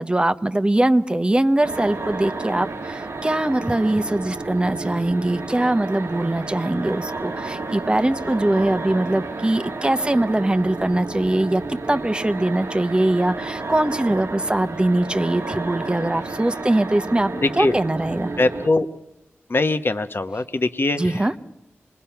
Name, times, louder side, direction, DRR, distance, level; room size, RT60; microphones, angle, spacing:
voice 1, 0.0-18.3 21.0-21.3, right 1 dB, 20° right, 10 dB, 0.9 m, -22 dB
sound 1, 1.6-18.7, right 3 dB, 65° right, 1.2 m, -31 dB
voice 2, 17.4-17.7 18.4-18.9 19.5-21.1, left 2 dB, 50° left, 9 dB, 1.1 m, -21 dB
25.5 x 21.0 x 5.8 m, 0.88 s
wide cardioid pair, 60°, 5 cm